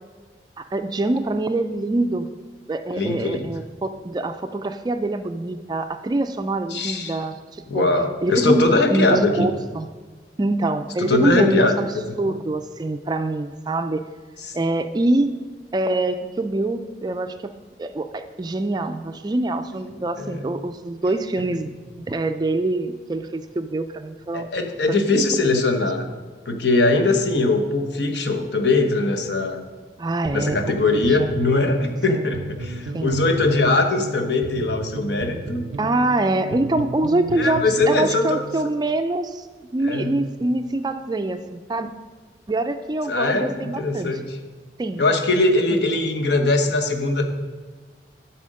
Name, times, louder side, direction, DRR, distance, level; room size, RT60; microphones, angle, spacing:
voice 1, 0.6-2.3 2.7-7.9 8.2-8.6 8.9-9.9 10.4-11.9 12.2-14.1 14.5-15.3 15.7-17.5 17.8-24.5 24.9-25.4 30.0-31.4 32.1-32.3 32.9-33.2 35.8-39.5 39.7-41.9 42.5-44.1 44.8-45.0 45.7-45.9, right 2 dB, 25° right, 9 dB, 0.3 m, -25 dB
voice 2, 2.9-3.5 6.7-7.2 7.7-9.5 11.0-12.3 14.5-14.6 20.2-20.4 24.3-26.1 26.5-29.6 30.3-35.6 37.4-38.4 39.8-40.2 43.1-44.4 45.0-47.2, left 2 dB, 70° left, 5 dB, 1.0 m, -21 dB
sound 1, 30.3-38.7, right 2 dB, 90° right, 0.5 m, -34 dB
11.0 x 4.3 x 6.4 m, 1.4 s
head